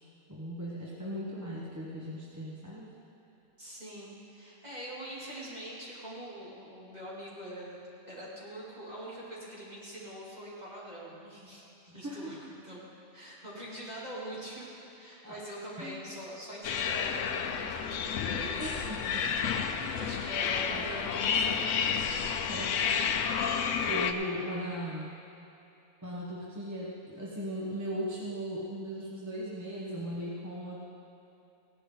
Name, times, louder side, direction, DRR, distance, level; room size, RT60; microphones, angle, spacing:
voice 1, 0.3-2.9 11.9-12.3 15.2-15.4 15.8-16.0 18.6-19.5 19.8-20.0 20.7-20.8 22.5-22.8 23.1-23.5 23.7-25.2 26.0-30.9, equal, 15° right, -6 dB, 1.2 m, -38 dB
voice 2, 3.6-12.4 12.6-12.9 13.1-17.1 17.4-19.0 19.9-22.7, equal, 30° right, -7 dB, 3.1 m, -44 dB
sound 1, 16.6-24.1, left 7 dB, 75° left, 1.0 m, -30 dB
16.5 x 11.0 x 3.9 m, 2.9 s
omnidirectional pair, 1.3 m